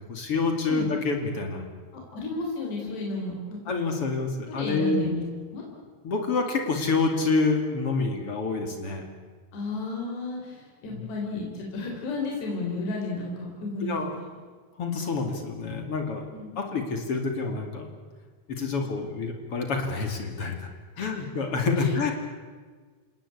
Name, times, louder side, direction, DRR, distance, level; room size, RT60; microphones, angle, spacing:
voice 1, 0.1-1.6 3.7-5.0 6.0-9.0 10.9-11.0 13.8-14.1 14.8-16.2 16.6-17.9 18.5-20.6 21.0-22.1, left 4 dB, 40° left, 4 dB, 2.8 m, -27 dB
voice 2, 2.1-3.6 4.5-5.2 5.5-5.6 9.5-13.9 14.2-14.3 16.3-16.7 18.6-18.9 21.0-21.1 21.8-22.0, left 3 dB, 75° left, -1 dB, 6.0 m, -33 dB
28.0 x 19.0 x 8.5 m, 1.5 s
omnidirectional pair, 4.9 m